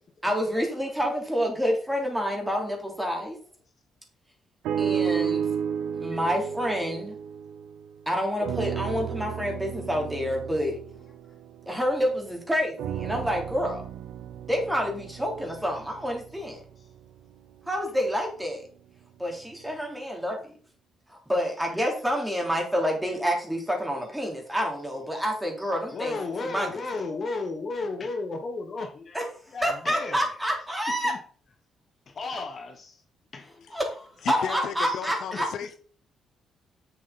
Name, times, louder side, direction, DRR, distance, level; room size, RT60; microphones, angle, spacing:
voice 1, 0.2-3.4 4.8-5.5 5.9-7.2 8.0-10.8 11.6-13.8 14.5-16.6 17.7-18.6 19.2-20.5 21.1-26.2 26.4-26.7 29.1-29.2 29.6-31.1 33.7-35.5, equal, 5° right, 3.4 m, -28 dB
sound 1, 4.6-8.0 8.4-12.1 12.8-17.0 17.7-17.8, right 8 dB, 85° right, 0.8 m, -33 dB
voice 2, 25.9-30.2 31.0-31.2 32.1-33.0 33.3-33.7 34.2-35.7, left 3 dB, 45° left, 1.2 m, -35 dB
voice 3, 34.2-35.7, left 8 dB, 75° left, 0.9 m, -34 dB
7.7 x 7.2 x 4.1 m
cardioid pair, 90°, 0 cm